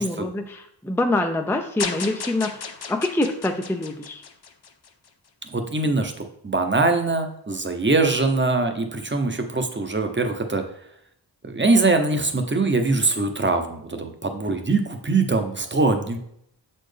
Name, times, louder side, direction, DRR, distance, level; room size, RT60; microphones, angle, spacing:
voice 1, 0.0-4.2, left 2 dB, 5° left, 5 dB, 0.4 m, -25 dB
sound 1, 1.8-5.1, left 6 dB, 60° left, 0.7 m, -34 dB
voice 2, 5.5-10.6 11.4-16.2, right 3 dB, 25° right, 5 dB, 0.8 m, -22 dB
7.3 x 4.3 x 3.3 m, 0.71 s
wide cardioid pair, 70°, 44 cm